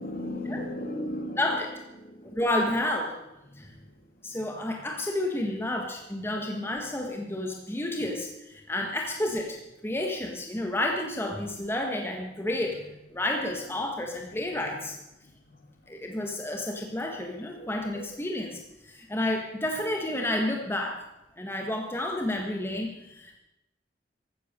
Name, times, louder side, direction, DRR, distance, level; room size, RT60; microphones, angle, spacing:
voice 1, 0.0-1.4 2.0-2.4 17.6-17.7 17.9-18.1, left 1 dB, 50° left, 4 dB, 2.5 m, -35 dB
voice 2, 1.4-1.7 2.2-3.2 3.5-3.7 4.2-12.8 13.1-15.0 15.9-21.0 21.4-23.4, left 1 dB, 15° left, 2 dB, 1.5 m, -30 dB
15.0 x 13.0 x 6.8 m, 0.92 s
head